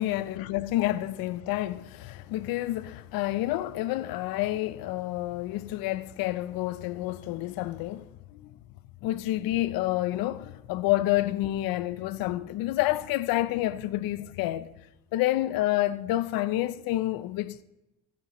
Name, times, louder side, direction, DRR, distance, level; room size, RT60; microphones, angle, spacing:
voice 1, 0.0-8.5 9.0-14.7 15.1-17.6, left 16 dB, 80° left, 0.7 m, -29 dB
21.5 x 11.0 x 3.1 m
supercardioid pair, 75°, 34 cm